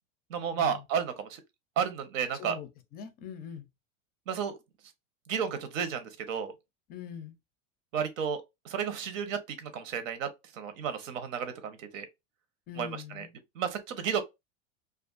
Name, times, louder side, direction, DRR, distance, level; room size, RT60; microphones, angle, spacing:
voice 1, 0.3-1.4 1.8-2.6 4.3-4.6 5.3-6.5 7.9-12.1 12.8-13.3 13.5-14.2, right 7 dB, 85° right, 0.9 m, -32 dB
voice 2, 2.4-3.7 6.9-7.3 12.7-13.3, left 8 dB, 25° left, 0.4 m, -42 dB
2.4 x 2.4 x 2.4 m
supercardioid pair, 135°, 38 cm